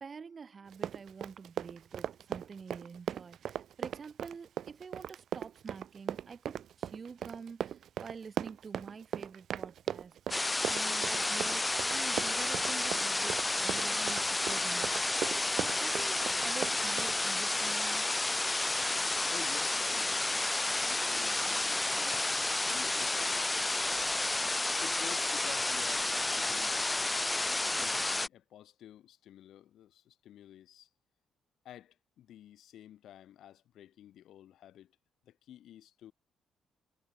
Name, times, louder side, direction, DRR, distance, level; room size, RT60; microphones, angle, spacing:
voice 1, 0.0-10.2 10.6-18.1, right 5 dB, 40° right, 1.7 m, -47 dB
Run, 0.7-17.2, right 10 dB, 65° right, 1.9 m, -38 dB
sound 1, 10.3-28.3, left 2 dB, 15° left, 0.5 m, -31 dB
voice 2, 19.3-24.1 24.8-26.8 27.7-30.9 31.6-35.0 35.2-36.1, left 11 dB, 75° left, 7.2 m, -51 dB
cardioid pair, 90°, 0 cm